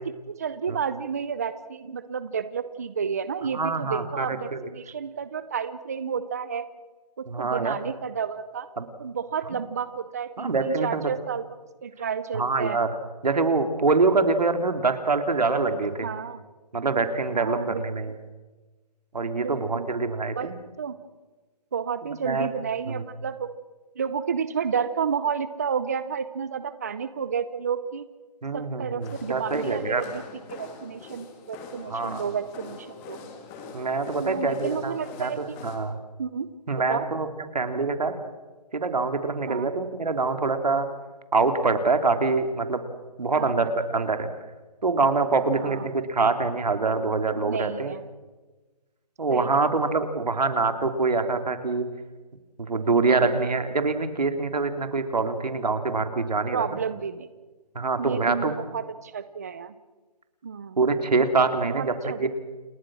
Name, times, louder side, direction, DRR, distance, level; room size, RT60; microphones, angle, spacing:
voice 1, 0.3-6.6 7.2-8.7 9.0-11.5 11.8-12.8 16.0-16.4 17.4-17.9 19.4-19.9 20.3-20.5 20.8-21.0 21.7-23.5 24.0-28.1 28.5-30.2 30.5-33.2 34.2-35.6 36.2-36.5 36.9-37.1 39.5-39.7 43.3-43.6 45.6-45.9 47.4-48.0 49.3-49.9 53.1-53.3 56.5-57.3 58.0-59.7 60.4-60.8 61.6-62.3, right 7 dB, 25° right, 13 dB, 0.6 m, -31 dB
voice 2, 3.5-4.7 7.3-7.7 8.8-8.9 10.4-11.0 12.3-13.0 13.2-16.1 16.7-18.2 19.1-20.5 22.1-22.5 22.9-23.0 28.4-30.0 31.9-32.2 33.7-36.0 36.7-37.3 37.5-38.1 38.7-40.9 41.3-42.8 43.2-44.3 44.8-47.9 49.2-51.9 52.6-56.7 57.7-58.5 60.8-62.3, right 3 dB, 75° right, 8 dB, 3.1 m, -25 dB
sound 1, 29.0-35.8, left 4 dB, 10° left, 1.9 m, -43 dB
29.0 x 20.0 x 6.3 m, 1.2 s
hypercardioid pair, 170°, 21 cm